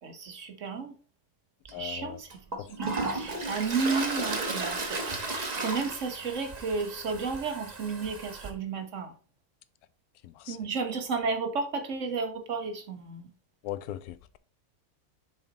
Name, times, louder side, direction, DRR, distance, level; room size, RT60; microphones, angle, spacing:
voice 1, 0.0-1.0 1.6-9.2 10.5-13.3, right 4 dB, 55° right, 1.4 m, -33 dB
voice 2, 1.7-2.2 2.6-2.7 10.2-10.6 13.6-14.2, left 13 dB, 80° left, 1.1 m, -38 dB
Toilet flush, 1.7-1.8 2.3-8.5, right 3 dB, 30° right, 1.0 m, -34 dB
7.1 x 4.5 x 4.0 m
omnidirectional pair, 1.6 m